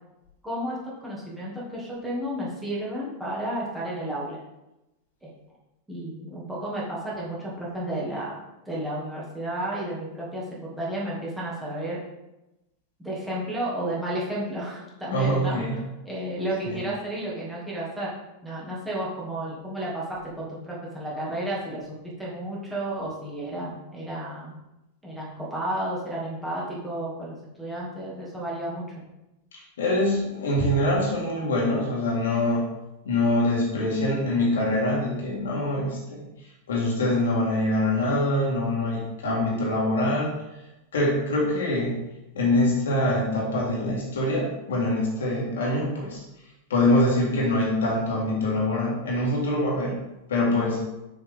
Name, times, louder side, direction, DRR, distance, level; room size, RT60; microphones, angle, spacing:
voice 1, 0.4-4.4 5.2-5.3 5.9-12.0 13.0-15.6 16.0-18.1 18.4-21.8 22.2-24.5 25.0-28.8, right 1 dB, 5° right, -7 dB, 2.5 m, -32 dB
voice 2, 15.1-15.8 16.6-16.8 29.5-32.6 33.1-36.3 36.7-40.3 40.9-42.0 42.3-46.2 46.7-49.9 50.3-50.8, left 1 dB, 65° left, -3 dB, 2.0 m, -24 dB
6.7 x 4.7 x 3.7 m, 0.95 s
figure-of-eight pair, 90°, 0 cm